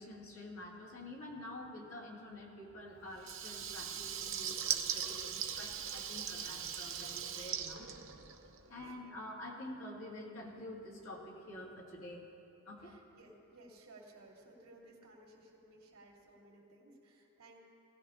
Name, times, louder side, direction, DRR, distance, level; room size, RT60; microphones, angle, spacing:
voice 1, 0.0-7.9 8.7-12.3 12.7-12.9, left 1 dB, 60° left, -4 dB, 2.4 m, -48 dB
Water tap faucet / Liquid, 3.2-8.7, right 8 dB, 55° right, 0.8 m, -39 dB
voice 2, 8.6-9.1 12.8-17.6, right 2 dB, 75° right, -3 dB, 2.7 m, -59 dB
19.5 x 16.5 x 2.5 m, 2.8 s
head